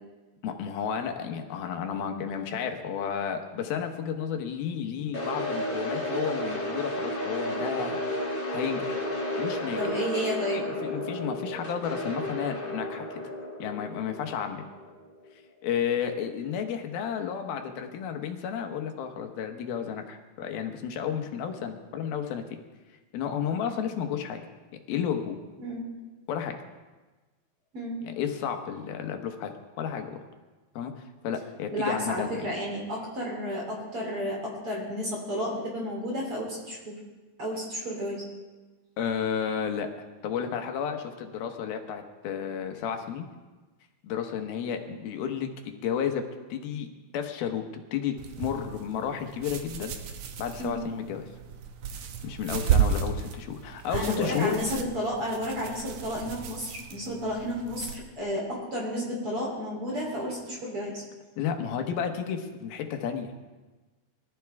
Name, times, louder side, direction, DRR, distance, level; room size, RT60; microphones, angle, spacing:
voice 1, 0.4-8.0 8.5-9.0 9.4-10.0 10.5-13.1 13.6-14.6 15.6-22.6 23.1-24.4 24.9-25.4 26.3-26.6 28.0-30.2 30.8-30.9 31.2-32.5 39.0-39.9 40.2-43.3 44.0-46.2 46.5-46.9 47.1-49.9 50.4-51.2 51.9-54.6 61.4-63.3, left 8 dB, 85° left, 5 dB, 3.0 m, -32 dB
sound 1, 5.1-15.2, left 1 dB, 20° left, 2.6 m, -32 dB
voice 2, 9.8-10.6 25.6-25.8 27.7-28.0 31.7-37.0 37.4-38.2 50.6-50.8 53.9-61.0, equal, 40° right, -3 dB, 4.1 m, -32 dB
sound 2, 48.2-58.0, right 8 dB, 70° right, 1.9 m, -33 dB
23.5 x 12.5 x 3.5 m, 1.3 s
omnidirectional pair, 4.2 m